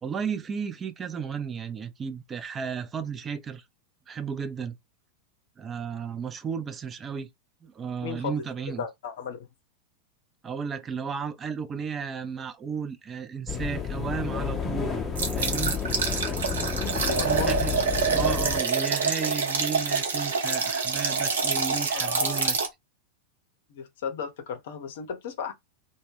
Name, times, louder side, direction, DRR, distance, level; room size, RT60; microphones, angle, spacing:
voice 1, 0.0-3.6 4.1-4.8 5.6-7.3 7.6-8.8 10.4-15.0 15.3-15.7 17.2-17.7 18.1-22.6, right 6 dB, 20° right, 0.3 m, -34 dB
voice 2, 8.0-8.4 8.8-9.5 17.0-17.5 21.9-22.5 23.7-25.5, left 6 dB, 55° left, 0.6 m, -35 dB
sound 1, 13.5-18.6, left 6 dB, 15° left, 0.7 m, -30 dB
sound 2, 15.2-22.7, right 5 dB, 65° right, 0.6 m, -26 dB
2.1 x 2.1 x 3.4 m
figure-of-eight pair, 90°, 0 cm